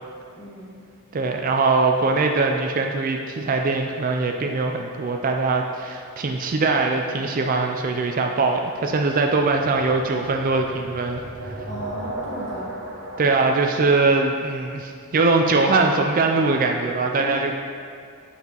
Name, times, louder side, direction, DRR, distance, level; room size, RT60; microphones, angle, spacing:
voice 1, 0.3-0.8 11.7-12.8 13.4-13.5 17.2-17.4, left 1 dB, 30° left, -6 dB, 1.5 m, -35 dB
voice 2, 1.1-11.5 13.2-17.6, right 3 dB, 40° right, 3 dB, 0.4 m, -22 dB
sound 1, 4.6-5.5 9.1-13.4, right 1 dB, 55° right, 1.2 m, -36 dB
8.2 x 5.5 x 3.0 m, 2.4 s
head